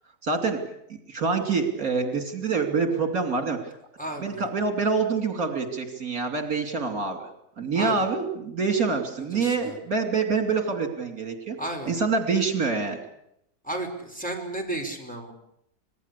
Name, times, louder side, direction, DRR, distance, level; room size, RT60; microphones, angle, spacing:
voice 1, 0.2-0.6 1.1-3.6 4.2-7.3 7.6-11.6 11.8-13.0, right 4 dB, 60° right, 6 dB, 3.5 m, -26 dB
voice 2, 4.0-4.5 7.7-8.0 9.2-9.8 11.6-11.9 13.6-15.3, right 1 dB, 5° left, 1 dB, 4.9 m, -33 dB
26.0 x 20.0 x 8.3 m, 0.77 s
omnidirectional pair, 1.7 m